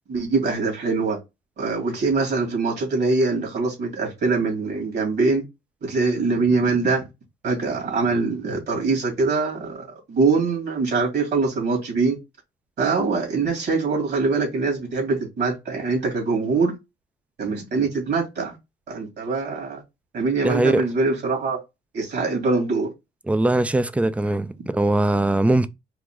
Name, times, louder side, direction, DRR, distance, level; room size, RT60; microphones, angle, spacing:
voice 1, 0.1-1.2 1.6-5.4 5.8-7.1 7.4-12.2 12.8-16.8 17.4-18.6 18.9-19.8 20.1-21.6 21.9-22.9, right 4 dB, 55° right, 2.7 m, -23 dB
voice 2, 20.4-20.8 23.3-25.7, right 2 dB, 5° right, 0.4 m, -20 dB
4.8 x 2.5 x 3.7 m
cardioid pair, 90°, 20 cm